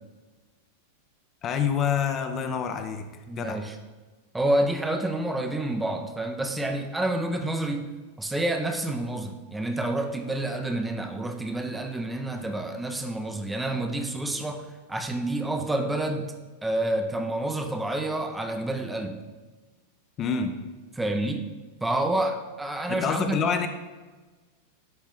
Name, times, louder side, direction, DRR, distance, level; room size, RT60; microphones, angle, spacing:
voice 1, 1.4-3.1 3.4-3.6 20.2-20.5 22.9-23.7, left 7 dB, 30° left, 6 dB, 0.7 m, -27 dB
voice 2, 3.3-3.7 4.3-7.9 8.2-16.3 16.6-19.2 21.0-21.5 21.8-23.4, right 1 dB, 5° right, 4 dB, 0.6 m, -28 dB
10.5 x 4.1 x 3.7 m, 1.3 s
figure-of-eight pair, 90°, 0 cm